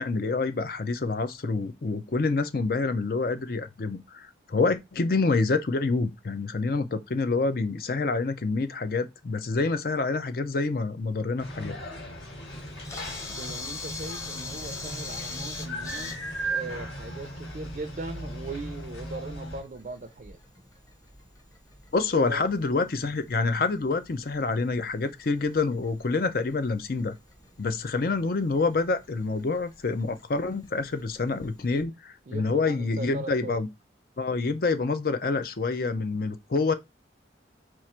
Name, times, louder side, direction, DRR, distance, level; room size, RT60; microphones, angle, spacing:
voice 1, 0.0-11.8 21.9-27.1 27.6-33.7 34.2-36.7, left 3 dB, 50° left, 0.5 m, -27 dB
sound 1, 11.4-19.6, right 1 dB, 75° left, 2.8 m, -37 dB
Camera, 12.5-31.8, left 3 dB, 20° left, 0.9 m, -45 dB
voice 2, 13.3-20.4 22.2-22.5 32.3-33.6, right 2 dB, 45° right, 0.5 m, -39 dB
4.6 x 2.5 x 4.3 m
head